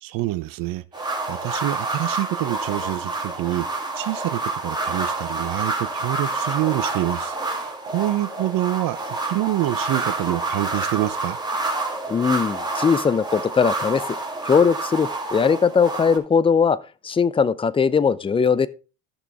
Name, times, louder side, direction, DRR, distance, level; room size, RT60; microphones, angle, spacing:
voice 1, 0.0-3.7 3.9-11.4, right 16 dB, 50° right, 0.8 m, -26 dB
sound 1, 0.9-16.2, right 2 dB, 10° right, 2.7 m, -28 dB
voice 2, 12.1-14.0 14.4-16.8 17.0-18.7, left 6 dB, 10° left, 0.5 m, -19 dB
14.0 x 6.0 x 3.5 m
hypercardioid pair, 80°, 45 cm